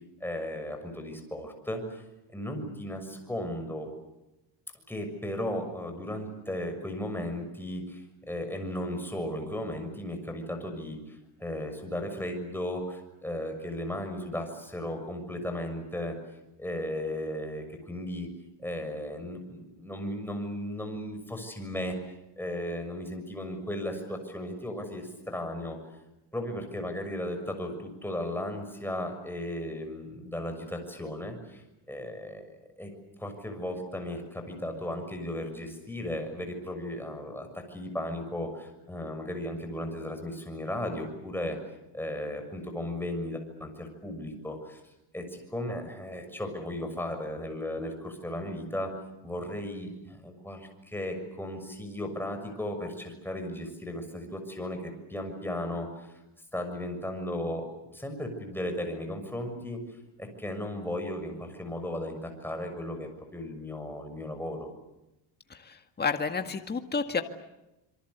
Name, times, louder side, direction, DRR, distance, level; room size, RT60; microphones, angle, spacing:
voice 1, 0.2-2.0 2.3-3.9 4.9-16.2 16.6-18.3 18.6-22.0 22.4-25.8 26.3-32.4 32.8-32.9 33.2-41.6 41.9-44.8 45.1-48.9 49.2-56.1 56.5-57.6 57.9-59.8 60.2-64.7, left 1 dB, 5° left, 4 dB, 6.6 m, -35 dB
voice 2, 66.0-67.2, left 5 dB, 20° left, 7 dB, 1.9 m, -29 dB
27.0 x 24.0 x 8.2 m, 0.94 s
cardioid pair, 115°, 48 cm